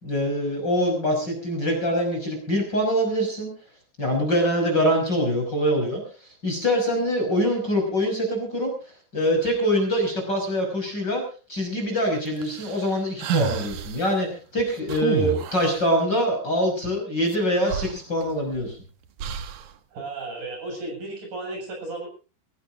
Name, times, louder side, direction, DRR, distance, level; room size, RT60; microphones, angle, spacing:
voice 1, 0.0-3.5 4.0-8.7 9.1-11.2 11.5-18.8, equal, 25° left, 2 dB, 6.3 m, -24 dB
sound 1, 12.4-14.0 14.9-15.8 17.3-17.4 17.7-18.6 19.2-19.7, right 8 dB, 65° right, 1.9 m, -29 dB
voice 2, 19.9-22.1, right 2 dB, 45° right, 1 dB, 8.9 m, -34 dB
24.0 x 18.5 x 2.6 m, 0.35 s
omnidirectional pair, 5.1 m